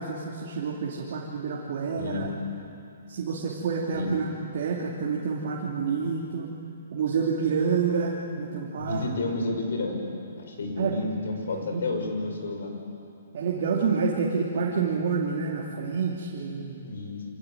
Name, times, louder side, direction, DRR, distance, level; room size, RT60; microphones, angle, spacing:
voice 1, 0.0-2.3 3.1-4.3 4.5-6.5 6.9-9.0 10.8-10.9 11.5-11.8 13.3-16.8, right 5 dB, 50° right, -2 dB, 2.8 m, -28 dB
voice 2, 2.0-2.3 3.9-4.1 8.8-10.1 10.4-12.7 16.8-17.2, left 2 dB, 70° left, 2 dB, 6.2 m, -31 dB
26.0 x 18.0 x 9.2 m, 2.6 s
hypercardioid pair, 165°, 0 cm